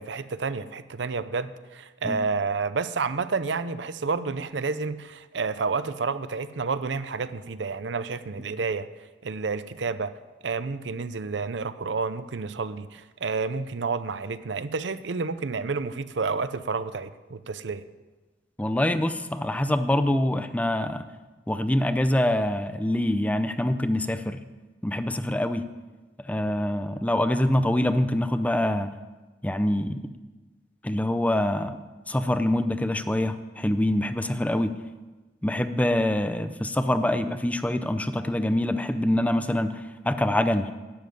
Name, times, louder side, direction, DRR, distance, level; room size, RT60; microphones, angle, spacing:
voice 1, 0.0-8.9 9.2-10.1 10.4-17.8, right 4 dB, 75° right, 13 dB, 0.6 m, -30 dB
voice 2, 18.6-21.1 21.5-24.4 24.8-25.7 26.3-28.9 29.4-30.0 30.8-31.8 32.1-34.7 35.4-40.7, left 1 dB, 10° left, 10 dB, 0.5 m, -25 dB
11.5 x 7.5 x 9.3 m, 1.2 s
head